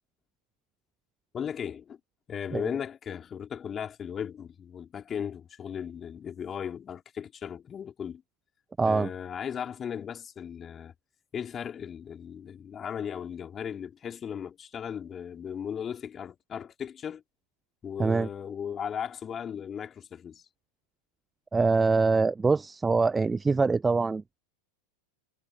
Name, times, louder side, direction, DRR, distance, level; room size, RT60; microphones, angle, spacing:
voice 1, 1.3-2.0 2.3-8.2 8.8-10.9 11.3-17.2 17.8-20.4, left 8 dB, 25° left, 3.9 m, -37 dB
voice 2, 8.8-9.1 18.0-18.3 21.5-24.4, right 4 dB, 15° right, 0.5 m, -24 dB
figure-of-eight pair, 90°, 0 cm